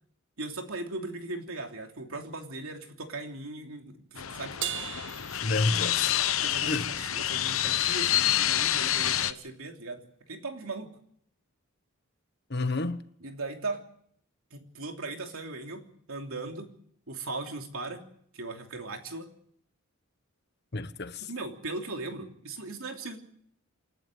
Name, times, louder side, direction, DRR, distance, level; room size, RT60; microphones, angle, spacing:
voice 1, 0.4-4.6 6.4-11.0 13.2-13.8 14.5-16.7 17.1-18.0 18.3-19.3 21.2-23.2, right 2 dB, 90° right, 3.1 m, -38 dB
sound 1, 4.2-9.3, left 11 dB, 80° left, 1.0 m, -28 dB
Crash cymbal, 4.6-6.3, right 9 dB, 55° right, 1.2 m, -37 dB
voice 2, 5.4-6.2 6.6-6.9 12.5-13.0 20.7-21.3, left 2 dB, 50° left, 1.3 m, -30 dB
28.5 x 11.5 x 9.3 m
head